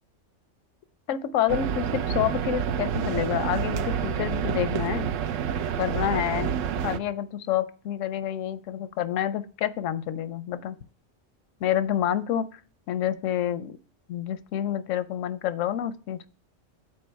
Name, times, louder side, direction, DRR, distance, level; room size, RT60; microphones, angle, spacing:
voice 1, 1.1-5.1 5.8-6.5 6.8-10.8 11.6-12.6 12.9-13.8 14.1-16.3, left 10 dB, 85° left, 14 dB, 1.0 m, -28 dB
sound 1, 1.5-7.0, right 8 dB, 90° right, 0.9 m, -28 dB
7.6 x 4.3 x 4.5 m, 0.39 s
omnidirectional pair, 1.3 m